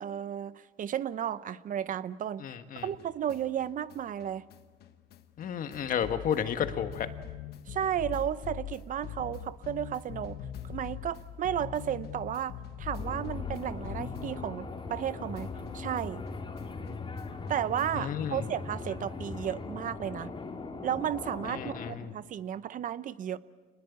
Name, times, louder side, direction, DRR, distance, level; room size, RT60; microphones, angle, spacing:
voice 1, 0.0-2.4 2.8-4.4 7.7-10.4 10.6-12.5 12.8-15.5 15.7-16.2 17.5-20.3 20.8-23.4, right 10 dB, 50° right, 16 dB, 0.8 m, -33 dB
voice 2, 2.4-2.9 5.4-7.1 17.9-18.4 21.5-22.1, left 8 dB, 55° left, 9 dB, 1.6 m, -32 dB
sound 1, 2.8-15.1 15.4-18.1, left 9 dB, 70° left, 1.3 m, -43 dB
sound 2, 13.0-21.9, left 4 dB, 30° left, 2.9 m, -39 dB
25.5 x 20.0 x 8.3 m, 1.4 s
cardioid pair, 110°, 17 cm